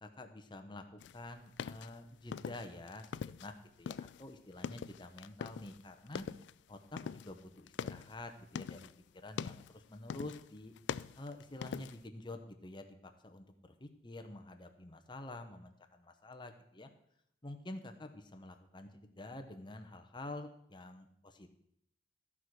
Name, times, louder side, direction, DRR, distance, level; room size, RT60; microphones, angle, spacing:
voice 1, 0.0-0.8 1.1-6.3 6.7-8.9 9.1-10.7 11.2-16.9 17.4-21.6, left 2 dB, 25° left, 7 dB, 0.9 m, -48 dB
sound 1, 1.0-3.5 3.8-5.8 6.1-6.5 7.0-9.0 9.3-9.8 10.1-10.5 10.8-12.1, left 7 dB, 70° left, 0.3 m, -43 dB
14.0 x 4.9 x 6.0 m, 0.73 s
head